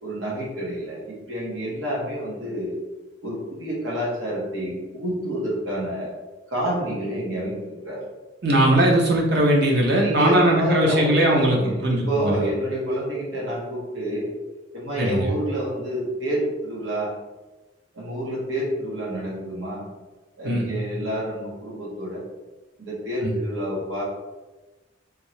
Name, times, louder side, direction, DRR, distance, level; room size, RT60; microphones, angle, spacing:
voice 1, 0.0-2.8 3.2-6.1 6.5-8.0 10.0-14.3 14.7-17.1 17.9-19.9 20.4-22.2 22.8-24.0, equal, 80° right, -5 dB, 1.4 m, -28 dB
voice 2, 8.4-12.5 15.0-15.3 20.4-20.7 23.2-23.3, right 1 dB, 60° right, -1 dB, 0.9 m, -20 dB
3.4 x 2.8 x 3.2 m, 1.1 s
head